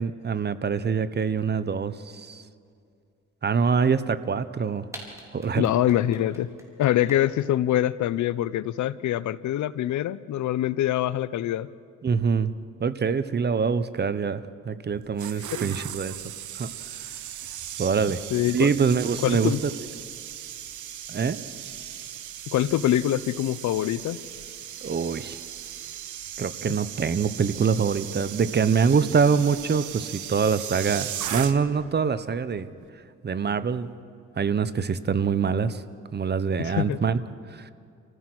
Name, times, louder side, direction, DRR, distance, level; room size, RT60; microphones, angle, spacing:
voice 1, 0.0-2.4 3.4-4.9 5.3-5.7 12.0-12.5 12.8-16.2 16.6-16.7 17.8-18.2 18.5-19.7 21.1-21.4 24.8-25.4 26.4-32.7 33.2-33.9 34.4-35.8 36.1-37.2 37.5-37.7, right 6 dB, 35° right, 14 dB, 0.9 m, -24 dB
sound 1, 4.5-4.6 4.9-7.4, right 1 dB, 10° right, 4.5 m, -43 dB
voice 2, 5.6-6.5 6.8-11.7 15.3-15.5 18.3-18.7 19.2-19.6 22.5-24.2 26.6-26.8 36.6-37.0, left 12 dB, 70° left, 17 dB, 0.7 m, -24 dB
sound 2, 14.9-31.9 32.1-32.4, right 10 dB, 75° right, 1.2 m, -37 dB
28.5 x 15.5 x 6.2 m, 2.4 s
cardioid pair, 90°, 30 cm